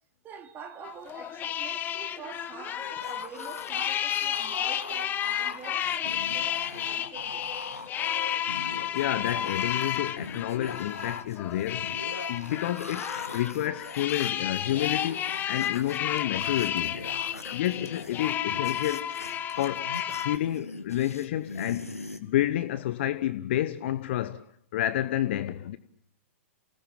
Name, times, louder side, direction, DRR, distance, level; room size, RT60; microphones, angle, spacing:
voice 1, 0.2-7.5, right 6 dB, 25° right, 2.5 m, -46 dB
sound 1, 0.8-20.4, left 10 dB, 25° left, 1.3 m, -32 dB
sound 2, 2.8-22.2, left 2 dB, 85° left, 2.2 m, -42 dB
voice 2, 8.9-12.0 12.3-17.0 17.5-19.1 19.6-21.9 22.2-24.4 24.7-25.8, left 13 dB, 50° left, 1.1 m, -30 dB
28.0 x 18.5 x 8.7 m
figure-of-eight pair, 105°, 8 cm